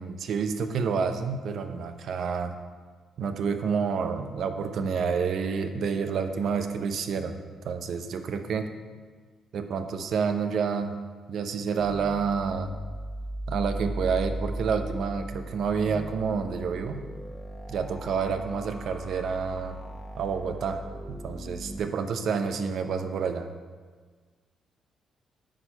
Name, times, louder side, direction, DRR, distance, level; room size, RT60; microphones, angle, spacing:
voice 1, 0.0-2.5 3.2-7.4 7.6-8.7 9.5-11.0 11.3-12.7 13.5-17.1 17.7-19.8 20.2-20.8 21.1-23.5, right 6 dB, 65° right, 7 dB, 0.7 m, -29 dB
sound 1, 11.8-21.8, right 1 dB, 10° left, 1.1 m, -37 dB
9.1 x 4.4 x 5.6 m, 1.5 s
cardioid pair, 90°, 0 cm